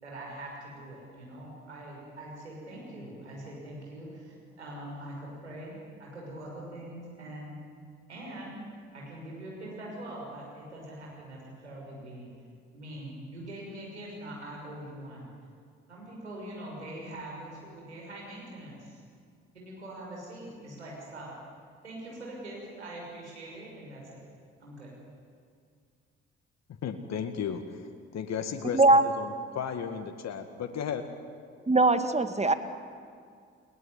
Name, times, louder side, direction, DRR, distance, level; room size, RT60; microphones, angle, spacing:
voice 1, 0.0-7.6 8.1-8.6 8.9-12.3 12.7-15.3 15.9-19.0 19.5-21.3 21.8-24.2 24.6-24.9, right 1 dB, 90° right, -3 dB, 6.0 m, -43 dB
voice 2, 26.8-27.8 28.1-29.3 29.5-31.0, left 7 dB, 55° left, 8 dB, 2.0 m, -34 dB
voice 3, 28.7-29.0 31.7-32.5, right 2 dB, 20° right, 10 dB, 2.3 m, -21 dB
30.0 x 19.5 x 9.7 m, 2.2 s
figure-of-eight pair, 40°, 33 cm